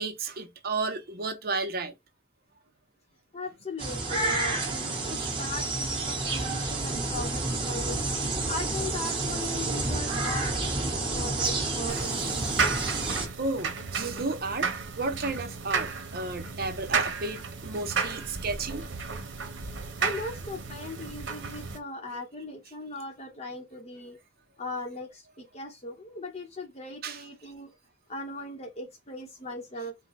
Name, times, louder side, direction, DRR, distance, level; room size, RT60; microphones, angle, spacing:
voice 1, 0.0-1.9 5.2-5.3 13.4-14.7 15.0-18.9 27.0-27.2, right 3 dB, 55° right, 0.8 m, -33 dB
voice 2, 3.3-8.0 8.5-12.2 20.0-24.2 24.6-27.7 28.1-30.0, left 2 dB, 35° left, 0.9 m, -38 dB
sound 1, 3.8-13.3, right 2 dB, 30° right, 1.4 m, -29 dB
sound 2, 11.9-21.8, right 5 dB, 90° right, 1.0 m, -33 dB
4.5 x 2.2 x 4.1 m
head